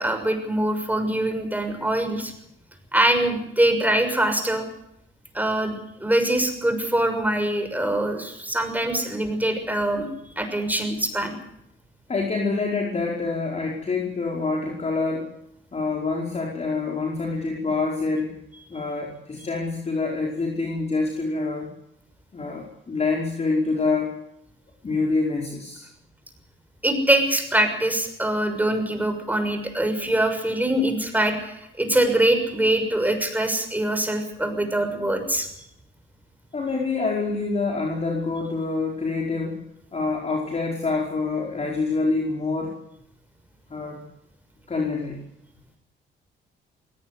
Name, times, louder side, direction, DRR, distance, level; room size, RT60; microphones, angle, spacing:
voice 1, 0.0-2.3 2.9-4.6 5.3-5.7 6.0-10.1 10.4-11.3 26.8-35.5, right 1 dB, 10° right, 7 dB, 6.4 m, -23 dB
voice 2, 12.1-15.3 15.7-18.4 18.7-21.7 22.3-24.1 24.8-25.9 36.5-39.6 39.9-42.7 43.7-44.0 44.7-45.2, left 3 dB, 35° left, 0 dB, 4.8 m, -26 dB
22.5 x 18.0 x 8.3 m, 0.77 s
cardioid pair, 90°, 20 cm